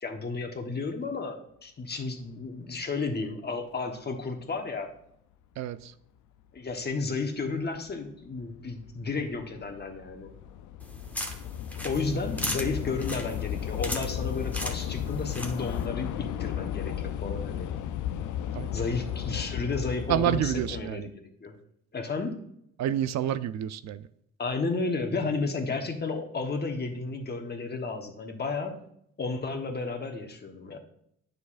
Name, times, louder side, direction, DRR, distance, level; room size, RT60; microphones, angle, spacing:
voice 1, 0.0-4.9 6.5-10.4 11.8-17.7 18.7-21.5 21.9-22.4 24.4-28.8 29.2-30.8, left 3 dB, 35° left, 1.2 m, -32 dB
voice 2, 5.6-5.9 18.5-18.7 20.1-21.1 22.8-24.1, right 10 dB, 65° right, 0.4 m, -29 dB
Train / Subway metro underground, 6.8-6.9 7.7-8.0 8.2-20.8, left 10 dB, 80° left, 0.5 m, -34 dB
sound 1, 10.8-15.9, equal, 5° left, 1.0 m, -38 dB
9.5 x 6.5 x 2.5 m
cardioid pair, 90°, 30 cm